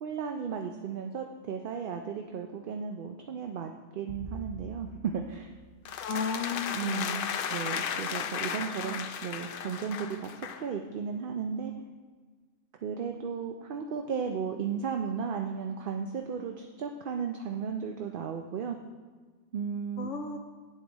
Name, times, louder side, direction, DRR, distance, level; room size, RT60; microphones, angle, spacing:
voice 1, 0.0-5.5 6.7-7.2 7.5-10.3 10.6-11.7 12.8-18.8 19.5-20.1, right 6 dB, 55° right, 4 dB, 0.7 m, -35 dB
sound 1, 4.1-6.6, right 3 dB, 10° right, 1.2 m, -46 dB
sound 2, 5.8-10.7, left 7 dB, 60° left, 0.6 m, -35 dB
voice 2, 6.0-7.4 20.0-20.4, left 5 dB, 85° left, 4 dB, 1.0 m, -34 dB
8.7 x 8.0 x 4.0 m, 1.5 s
omnidirectional pair, 1.2 m